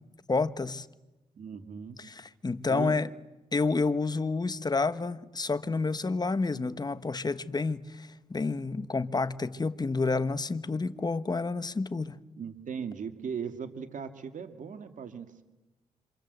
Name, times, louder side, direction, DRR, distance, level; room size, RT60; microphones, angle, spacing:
voice 1, 0.3-0.9 2.0-3.1 3.5-12.2, left 3 dB, 30° left, 1.4 m, -29 dB
voice 2, 1.3-2.0 2.7-3.0 12.4-15.4, right 6 dB, 65° right, 2.2 m, -38 dB
27.5 x 27.0 x 8.1 m
cardioid pair, 70°, 14 cm